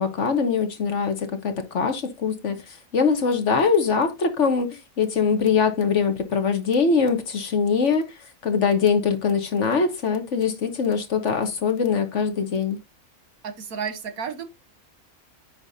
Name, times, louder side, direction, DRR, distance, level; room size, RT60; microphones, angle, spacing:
voice 1, 0.0-2.5 2.9-8.1 8.4-12.8, left 5 dB, 55° left, 1.5 m, -22 dB
voice 2, 13.4-14.4, right 7 dB, 80° right, 1.6 m, -32 dB
9.9 x 3.3 x 4.0 m
omnidirectional pair, 1.5 m